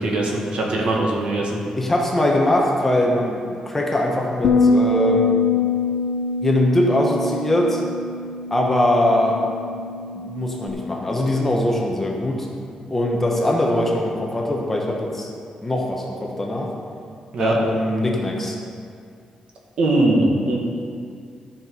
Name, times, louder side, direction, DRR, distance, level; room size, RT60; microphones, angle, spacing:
voice 1, 0.0-1.6 17.3-17.5 19.8-20.6, right 2 dB, 60° right, -1 dB, 1.7 m, -20 dB
voice 2, 1.8-5.3 6.4-7.8 8.5-9.4 10.2-12.5 12.9-15.3 15.6-16.7 17.4-18.6, left 1 dB, 15° left, -1 dB, 1.0 m, -21 dB
Bass guitar, 4.4-10.7, left 3 dB, 80° left, 0.5 m, -23 dB
12.5 x 6.0 x 5.4 m, 2.3 s
wide cardioid pair, 180°, 2 cm